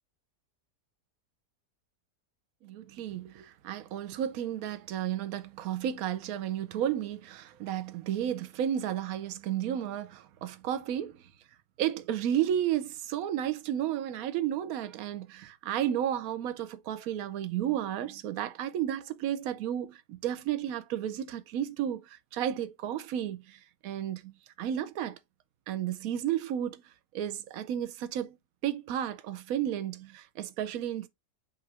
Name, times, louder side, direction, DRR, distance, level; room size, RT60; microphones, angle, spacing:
voice 1, 2.6-11.2 11.8-25.2 25.7-26.8 27.1-28.4 28.6-31.1, right 10 dB, 70° right, 1.0 m, -32 dB
5.7 x 2.5 x 3.3 m
omnidirectional pair, 1.7 m